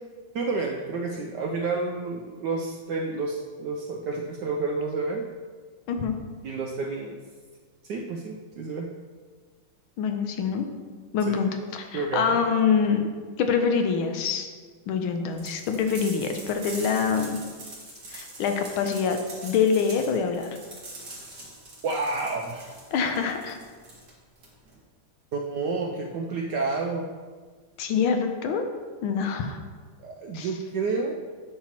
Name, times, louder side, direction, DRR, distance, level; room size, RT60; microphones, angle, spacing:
voice 1, 0.3-5.2 6.4-7.2 7.8-8.9 11.2-11.4 11.9-12.5 21.8-22.8 25.3-27.1 30.0-31.1, right 3 dB, 75° right, 1 dB, 1.0 m, -30 dB
voice 2, 10.0-10.6 11.1-13.0 13.4-14.5 14.9-17.4 18.1-20.5 22.9-23.6 27.8-28.6 29.0-29.6 30.3-30.5, left 6 dB, 80° left, 5 dB, 1.4 m, -25 dB
sound 1, 15.4-24.8, right 2 dB, 55° right, 2.1 m, -43 dB
8.6 x 5.7 x 2.9 m, 1.5 s
omnidirectional pair, 2.4 m